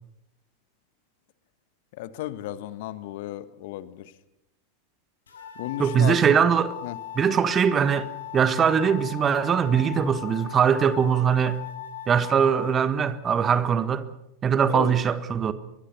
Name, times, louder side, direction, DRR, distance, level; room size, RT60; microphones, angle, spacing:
voice 1, 1.9-4.1 5.5-6.4 6.8-7.0 14.7-15.0, left 13 dB, 50° left, 1.4 m, -34 dB
sound 1, 5.3-12.9, left 12 dB, 70° left, 6.6 m, -39 dB
voice 2, 5.8-6.7 7.2-8.1 8.3-11.6 12.1-14.1 14.4-15.5, right 7 dB, 25° right, 1.6 m, -21 dB
23.0 x 22.0 x 6.8 m
figure-of-eight pair, 90°, 0 cm